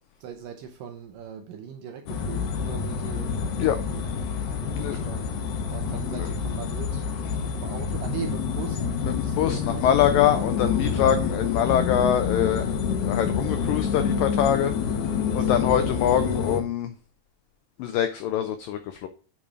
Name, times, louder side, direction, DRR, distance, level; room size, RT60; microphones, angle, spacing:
voice 1, 0.2-4.0 4.5-7.1 7.4-8.8 9.2-10.5 15.1-15.5, right 7 dB, 75° right, 2.0 m, -40 dB
sound 1, 2.1-16.6, left 6 dB, 70° left, 1.9 m, -27 dB
voice 2, 9.0-14.7 15.3-16.9 17.8-19.1, left 10 dB, 90° left, 2.0 m, -24 dB
8.7 x 3.9 x 4.8 m
omnidirectional pair, 4.7 m